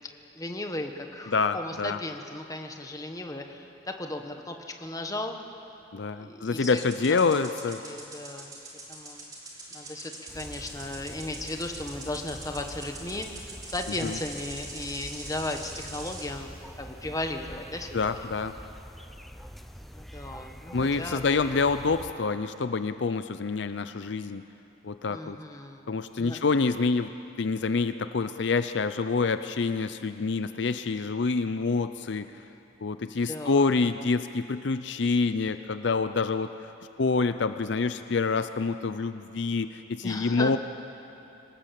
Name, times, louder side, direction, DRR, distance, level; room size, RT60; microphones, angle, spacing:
voice 1, 0.3-5.4 6.2-7.4 7.8-8.6 8.9-9.3 9.7-18.0 19.8-21.4 25.1-25.9 26.2-26.4 33.3-33.8 40.0-40.6, left 2 dB, 15° left, 4 dB, 1.3 m, -36 dB
voice 2, 1.3-2.0 5.9-7.8 14.0-14.2 17.9-18.5 20.7-24.4 24.8-25.4 25.9-27.1 27.4-32.3 32.8-36.7 37.0-40.6, left 4 dB, 60° left, 11 dB, 0.5 m, -27 dB
sound 1, 6.6-16.3, right 2 dB, 20° right, 3.2 m, -43 dB
sound 2, 10.3-22.1, equal, ahead, 0.5 m, -45 dB
25.5 x 18.5 x 7.6 m, 2.8 s
head